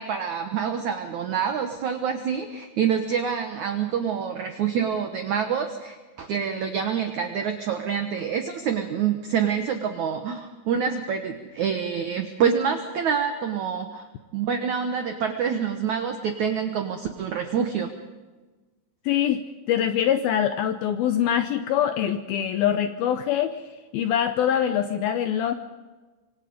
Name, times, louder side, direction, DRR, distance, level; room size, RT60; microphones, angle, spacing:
voice 1, 0.0-14.0 14.3-17.9, right 7 dB, 80° right, 6 dB, 1.7 m, -26 dB
voice 2, 19.1-23.6 23.9-25.5, left 10 dB, 80° left, 9 dB, 2.2 m, -24 dB
26.0 x 24.5 x 5.1 m, 1.3 s
omnidirectional pair, 5.2 m